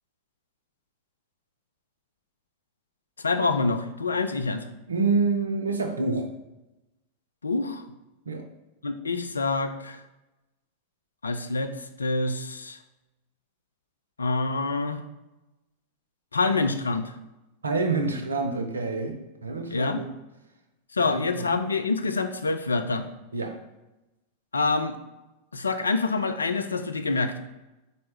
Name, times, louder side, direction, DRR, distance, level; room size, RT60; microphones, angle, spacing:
voice 1, 3.2-4.7 7.4-7.8 8.8-10.0 11.2-12.8 14.2-15.0 16.3-17.1 19.7-20.0 20.9-23.1 24.5-25.0 25.5-27.4, left 3 dB, 75° left, 9 dB, 0.3 m, -26 dB
voice 2, 4.9-6.3 8.3-8.4 17.6-20.1 21.0-21.2 23.3-23.6, right 3 dB, 75° right, 5 dB, 0.5 m, -27 dB
4.2 x 2.7 x 3.3 m, 1.0 s
figure-of-eight pair, 90°, 0 cm